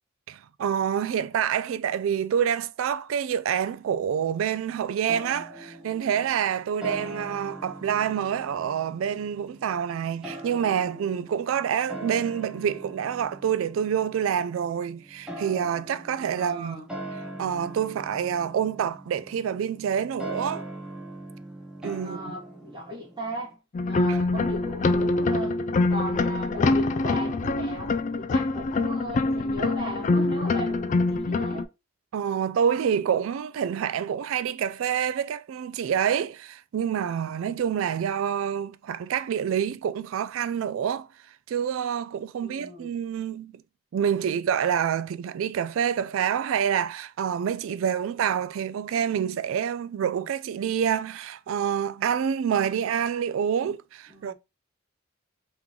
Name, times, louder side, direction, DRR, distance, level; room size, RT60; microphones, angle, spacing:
voice 1, 0.3-16.8 17.4-20.6 21.8-22.2 24.1-24.2 32.1-41.1 41.5-43.5 43.9-54.3, right 8 dB, 70° right, 0.3 m, -27 dB
sound 1, 5.1-23.5, right 1 dB, 5° right, 0.9 m, -41 dB
voice 2, 16.3-16.9 22.0-23.6 23.9-25.6 25.9-31.7 42.4-42.9 54.1-54.3, equal, 20° right, 1.9 m, -37 dB
sound 2, 23.7-31.6, left 3 dB, 35° left, 0.3 m, -25 dB
3.7 x 3.0 x 3.7 m
head